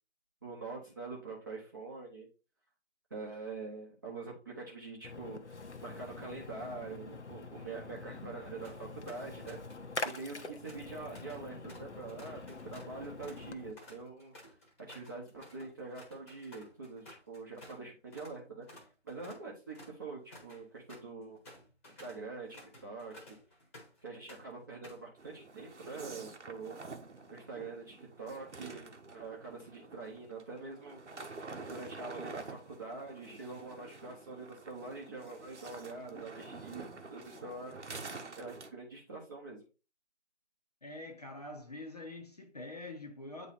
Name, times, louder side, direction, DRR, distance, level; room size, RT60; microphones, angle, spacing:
voice 1, 0.4-2.3 3.1-9.6 10.0-14.3 14.9-18.7 19.0-21.4 21.9-23.4 24.0-26.8 27.3-31.0 31.7-36.8 37.1-37.7 38.3-39.6, right 3 dB, 20° right, 0.9 m, -45 dB
Splash splatter, 5.0-13.7, left 3 dB, 75° left, 0.9 m, -45 dB
sound 1, 8.6-8.8 9.1-9.8 10.1-17.8 18.1-18.4 18.7-24.0 24.3-25.1, left 1 dB, 10° left, 1.2 m, -55 dB
sound 2, 25.2-38.7, right 3 dB, 80° right, 1.1 m, -48 dB
voice 2, 40.8-43.5, left 2 dB, 35° left, 0.7 m, -45 dB
8.7 x 3.1 x 4.1 m
figure-of-eight pair, 155°, 35 cm